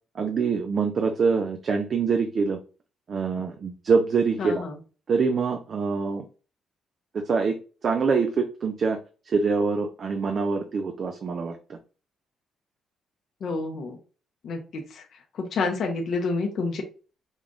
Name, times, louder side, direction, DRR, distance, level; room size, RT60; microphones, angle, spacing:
voice 1, 0.2-2.6 3.1-4.6 5.1-6.2 7.1-7.6 7.8-9.0 9.3-11.8, right 5 dB, 50° right, 5 dB, 0.6 m, -25 dB
voice 2, 4.4-4.8 13.4-14.0 14.4-15.0 15.3-16.8, left 3 dB, 60° left, 2 dB, 1.0 m, -29 dB
5.2 x 2.5 x 3.7 m, 0.35 s
cardioid pair, 90°, 0 cm